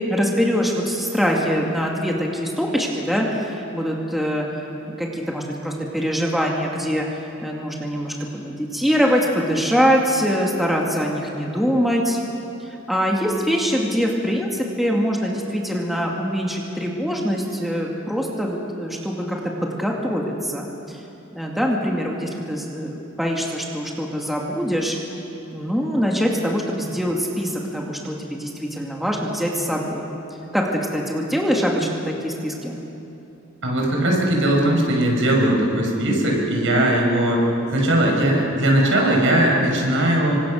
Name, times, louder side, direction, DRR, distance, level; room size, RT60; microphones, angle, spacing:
voice 1, 0.1-4.5 4.9-7.1 7.4-12.2 12.6-21.0 21.3-25.0 25.5-30.1 30.5-30.7 30.9-32.8, equal, ahead, -2 dB, 2.3 m, -23 dB
voice 2, 33.6-37.4 37.7-40.3, right 1 dB, 65° right, -1 dB, 5.8 m, -19 dB
27.5 x 25.0 x 6.5 m, 2.9 s
head